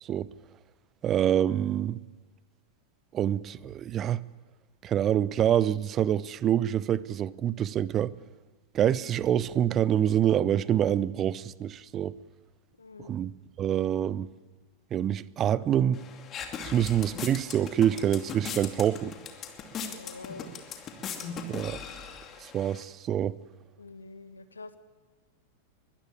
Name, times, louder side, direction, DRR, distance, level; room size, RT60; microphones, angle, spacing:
voice 1, 1.0-2.0 3.1-4.2 4.8-8.1 8.7-12.1 13.0-13.3 13.6-14.3 14.9-16.0 16.6-19.1 21.5-21.8 22.4-23.4, right 10 dB, 30° right, 0.7 m, -26 dB
voice 2, 12.8-13.2 19.8-20.5 23.8-24.8, left 3 dB, 75° left, 1.4 m, -45 dB
sound 1, 15.9-22.8, left 6 dB, 30° left, 2.5 m, -39 dB
21.5 x 15.0 x 9.7 m
figure-of-eight pair, 90°, 0 cm